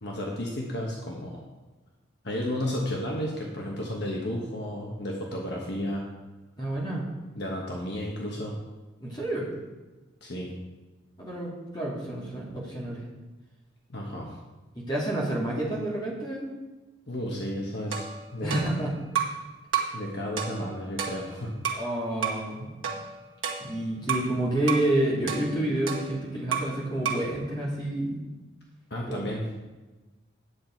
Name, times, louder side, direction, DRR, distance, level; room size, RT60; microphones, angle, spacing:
voice 1, 0.0-1.4 2.2-6.0 7.3-8.5 10.2-10.5 13.9-14.3 17.1-18.1 18.3-18.7 19.9-21.5 28.9-29.4, left 1 dB, 55° left, -1 dB, 1.3 m, -32 dB
voice 2, 6.6-7.1 9.0-9.5 11.2-13.0 14.7-16.5 18.4-18.9 21.7-22.7 23.6-28.2 29.1-29.2, right 1 dB, 20° left, -5 dB, 2.6 m, -29 dB
sound 1, 17.9-19.4 19.7-20.0 20.4-21.9 22.2-22.5 22.8-24.3 24.7-24.9 25.3-26.8 27.0-27.3, right 7 dB, 85° right, 1.3 m, -32 dB
9.6 x 7.6 x 4.5 m, 1.2 s
head